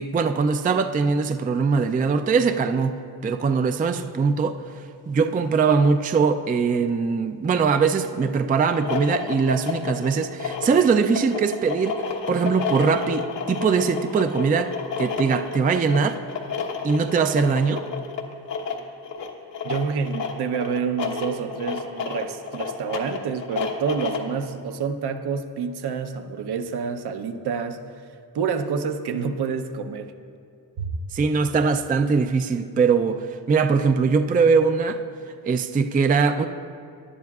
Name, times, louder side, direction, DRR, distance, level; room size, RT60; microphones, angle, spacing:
voice 1, 0.0-4.6 5.1-12.0 12.3-14.7 15.0-16.2 16.8-17.8 31.1-35.0 35.4-36.5, right 5 dB, 20° right, 0.4 m, -21 dB
sound 1, 8.7-24.4, left 5 dB, 80° left, 1.2 m, -31 dB
voice 2, 19.6-28.0 28.3-30.1 30.8-31.0, right 6 dB, 65° right, 0.8 m, -28 dB
18.0 x 11.0 x 2.4 m
cardioid pair, 90°, 43 cm